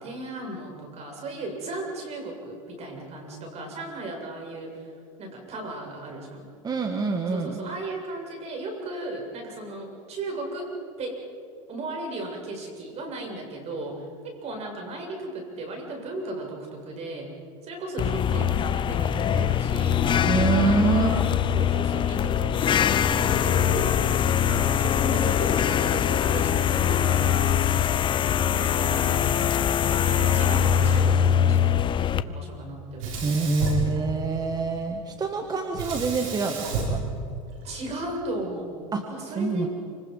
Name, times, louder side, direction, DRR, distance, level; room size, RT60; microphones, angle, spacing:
voice 1, 0.0-4.9 5.2-6.4 7.3-10.7 11.0-11.2 11.7-17.3 17.6-20.0 20.3-21.3 21.5-24.2 24.5-27.9 28.5-29.3 29.8-33.1 33.8-34.0 37.6-38.8 39.1-39.7, right 2 dB, 40° right, 2 dB, 7.4 m, -36 dB
voice 2, 6.6-7.7 20.2-21.2 33.2-37.0 38.9-39.7, right 4 dB, 20° right, 5 dB, 2.0 m, -26 dB
sound 1, 18.0-32.2, left 9 dB, 30° left, 0.8 m, -22 dB
Sink (filling or washing), 33.0-34.6 35.7-38.0, right 3 dB, 75° right, 7.1 m, -31 dB
28.0 x 27.0 x 5.6 m, 2.3 s
supercardioid pair, 110°, 17 cm